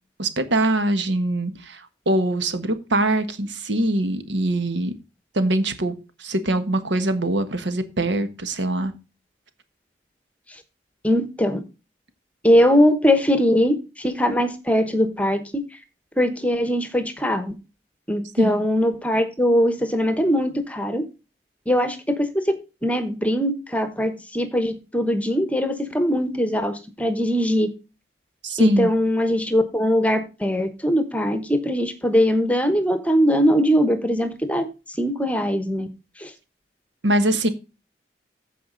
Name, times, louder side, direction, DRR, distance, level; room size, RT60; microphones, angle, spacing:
voice 1, 0.2-4.9 5.3-8.9 18.4-18.6 28.4-28.9 37.0-37.5, right 1 dB, 85° right, 9 dB, 1.4 m, -23 dB
voice 2, 11.0-11.6 12.4-15.6 16.2-17.5 18.1-21.0 21.7-27.7 28.6-35.9 36.2-36.3, equal, 10° left, 10 dB, 1.0 m, -21 dB
14.5 x 5.0 x 3.9 m, 0.30 s
head